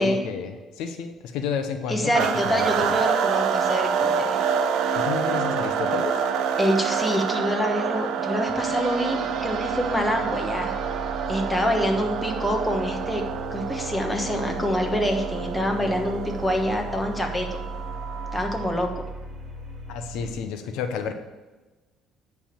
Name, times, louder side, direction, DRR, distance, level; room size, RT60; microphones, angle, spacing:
voice 1, 0.0-3.0 4.9-6.2 19.9-21.1, left 6 dB, 85° left, 7 dB, 0.8 m, -31 dB
voice 2, 1.9-4.4 6.6-10.7 11.3-13.2 13.5-17.6 18.3-19.0, equal, 10° left, 2 dB, 1.2 m, -26 dB
sound 1, 2.1-18.8, right 7 dB, 70° right, 0.6 m, -27 dB
sound 2, 8.3-20.3, right 2 dB, 45° right, 1.2 m, -37 dB
10.0 x 3.5 x 7.2 m, 1.2 s
cardioid pair, 125°, 0 cm